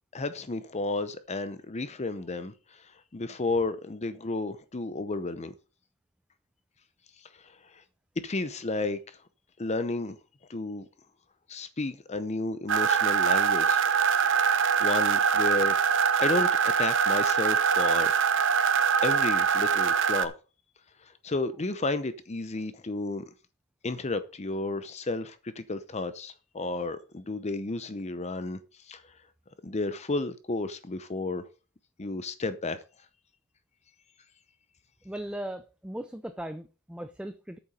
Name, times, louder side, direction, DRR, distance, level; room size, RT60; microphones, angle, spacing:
voice 1, 0.1-2.5 3.1-5.5 8.2-9.0 9.6-10.2 10.5-10.9 11.5-13.9 14.8-15.8 16.2-18.1 19.0-20.3 21.2-23.2 23.8-28.6 28.9-29.0 29.6-31.4 32.0-32.8, left 2 dB, 30° left, 0.7 m, -32 dB
sound 1, 12.7-20.2, right 7 dB, 60° right, 0.8 m, -23 dB
voice 2, 35.0-37.6, right 1 dB, 5° right, 0.4 m, -38 dB
8.8 x 7.1 x 5.2 m
head